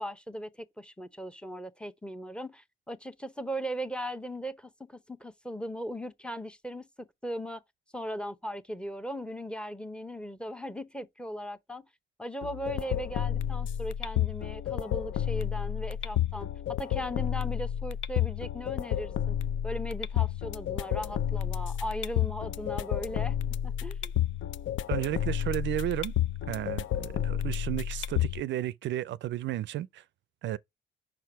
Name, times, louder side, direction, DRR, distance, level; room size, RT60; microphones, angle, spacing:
voice 1, 0.0-7.6 7.9-11.9 12.2-19.4 19.6-23.4 23.6-24.1, equal, 5° left, 0.8 m, -38 dB
sound 1, 12.4-28.4, left 11 dB, 70° left, 0.5 m, -31 dB
voice 2, 24.9-26.1 26.5-30.0 30.4-30.6, right 14 dB, 70° right, 0.4 m, -33 dB
5.9 x 4.6 x 4.5 m
cardioid pair, 90°, 20 cm